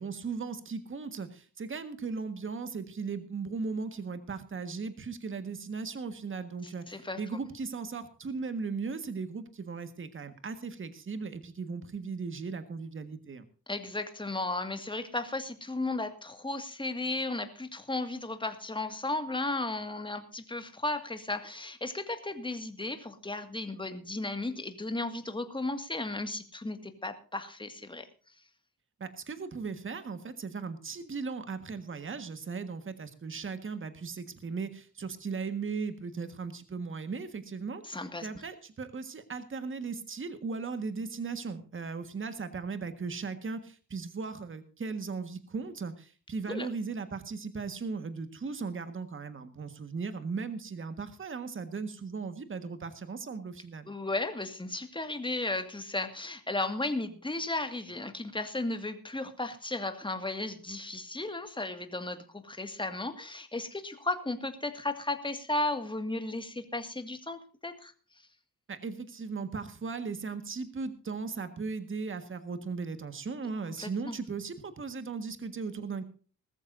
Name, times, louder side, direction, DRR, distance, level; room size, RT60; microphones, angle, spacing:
voice 1, 0.0-13.5 29.0-53.9 68.7-76.0, right 4 dB, 35° right, 10 dB, 1.6 m, -37 dB
voice 2, 6.9-7.2 13.7-28.1 37.8-38.3 46.5-46.7 53.9-67.9 73.8-74.2, left 2 dB, 15° left, 8 dB, 2.0 m, -35 dB
20.0 x 14.0 x 2.6 m, 0.38 s
cardioid pair, 115°, 34 cm